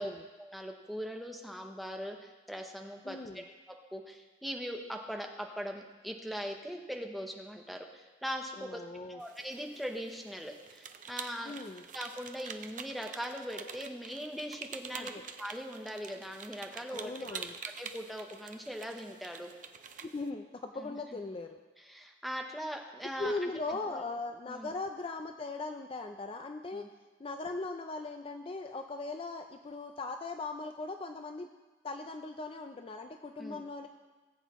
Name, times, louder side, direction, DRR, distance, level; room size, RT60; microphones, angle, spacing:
voice 1, 0.4-3.2 3.9-8.8 9.1-11.5 11.9-17.4 17.8-19.5 20.8-21.0 21.8-24.0 24.4-24.7 26.7-26.9 33.4-33.6, equal, ahead, 2 dB, 0.8 m, -40 dB
voice 2, 3.0-3.4 8.6-9.2 11.4-11.8 15.0-15.2 16.9-17.5 20.0-21.6 23.2-26.9 27.2-31.5 31.8-33.9, left 3 dB, 30° left, 6 dB, 0.4 m, -39 dB
sound 1, 9.2-20.3, right 6 dB, 45° right, 0.6 m, -47 dB
18.5 x 8.1 x 3.1 m, 1.3 s
head